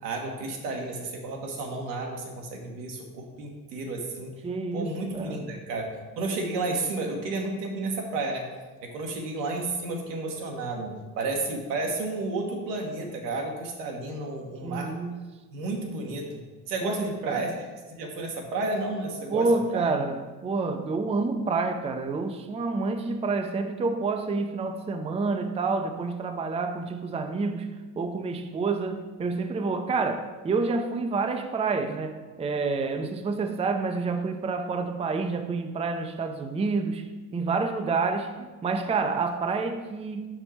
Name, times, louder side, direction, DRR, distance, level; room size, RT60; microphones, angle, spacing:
voice 1, 0.0-4.3 4.7-5.9 6.2-8.4 8.8-14.9 15.5-16.4 16.7-17.6 17.9-19.5 19.7-19.9, right 2 dB, 85° right, 1 dB, 1.2 m, -32 dB
voice 2, 4.4-5.4 14.6-15.3 16.8-17.4 19.3-27.7 28.0-40.4, right 4 dB, 15° right, 6 dB, 0.5 m, -28 dB
5.3 x 4.5 x 4.3 m, 1.3 s
hypercardioid pair, 65°, 48 cm